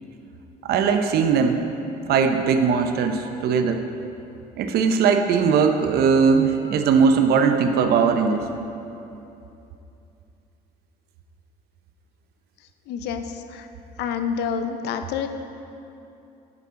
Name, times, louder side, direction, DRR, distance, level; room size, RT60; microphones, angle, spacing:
voice 1, 0.6-1.6 2.1-3.8 4.6-8.4, right 6 dB, 70° right, 6 dB, 0.6 m, -19 dB
voice 2, 12.9-13.2 13.5-13.6 14.0-15.3, left 7 dB, 80° left, 8 dB, 0.5 m, -27 dB
9.9 x 5.6 x 3.7 m, 2.8 s
cardioid pair, 110°, 17 cm